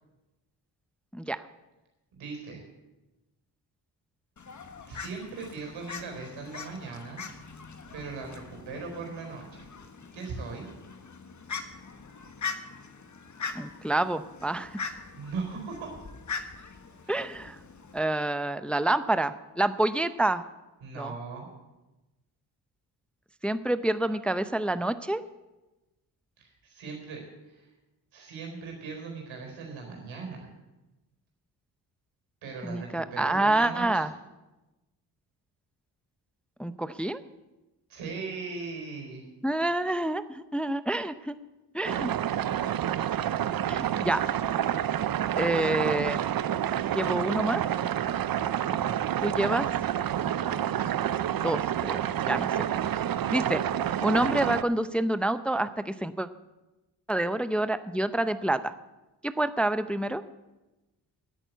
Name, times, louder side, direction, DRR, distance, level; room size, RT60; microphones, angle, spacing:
voice 1, 2.1-2.6 4.9-7.2 7.9-9.7 10.1-10.7 15.1-15.9 17.0-17.2 20.8-21.5 26.4-27.7 28.1-30.5 32.4-34.0 37.9-39.2, right 4 dB, 80° right, 2 dB, 4.3 m, -39 dB
Fowl, 4.4-18.0, left 5 dB, 40° left, 1.4 m, -42 dB
voice 2, 13.5-14.7 17.1-17.6 17.9-20.4 21.0-21.1 23.4-25.2 32.6-34.1 36.6-37.2 39.4-41.4 41.7-42.1 43.7-44.2 45.4-46.2 46.9-47.6 49.2-49.7 51.4-52.0 52.3-52.7 53.3-53.6 54.0-56.3 57.1-58.7 59.2-60.2, right 1 dB, ahead, 12 dB, 0.6 m, -27 dB
sound 1, 41.8-54.6, right 10 dB, 50° right, 0.7 m, -28 dB
10.5 x 8.9 x 8.3 m, 1.0 s
supercardioid pair, 55°, 45 cm